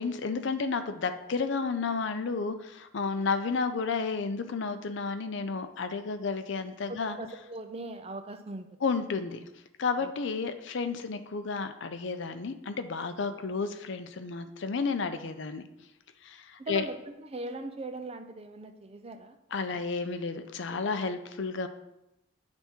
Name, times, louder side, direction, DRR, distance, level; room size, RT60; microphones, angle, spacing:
voice 1, 0.0-7.2 8.8-9.5 9.8-15.7 16.2-16.8 19.5-21.7, left 4 dB, 60° left, 9 dB, 0.5 m, -32 dB
voice 2, 6.9-8.7 10.0-10.1 16.6-17.0 17.3-19.4 19.6-19.8, right 2 dB, 30° right, 7 dB, 0.5 m, -39 dB
9.5 x 3.5 x 4.4 m, 0.90 s
head